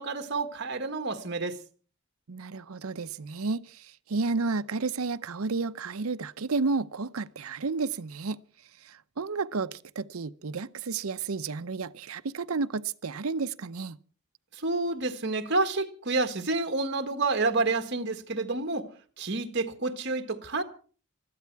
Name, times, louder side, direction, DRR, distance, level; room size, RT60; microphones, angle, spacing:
voice 1, 0.0-1.6 14.5-18.9 19.2-20.6, right 3 dB, 55° right, 1.6 m, -29 dB
voice 2, 2.3-8.4 8.8-14.0, right 4 dB, 85° right, 0.7 m, -32 dB
20.5 x 14.0 x 4.7 m
head